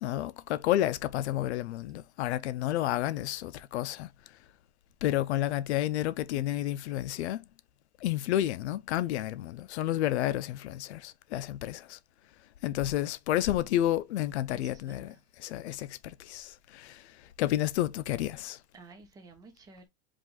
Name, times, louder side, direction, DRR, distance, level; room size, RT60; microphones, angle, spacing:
voice 1, 0.0-4.1 5.0-7.4 8.0-12.0 12.6-15.1 15.4-17.0 17.4-18.6, left 13 dB, 90° left, 0.6 m, -30 dB
voice 2, 14.5-15.2 18.7-19.9, right 3 dB, 10° right, 0.8 m, -53 dB
5.0 x 2.5 x 3.7 m
supercardioid pair, 175°, 32 cm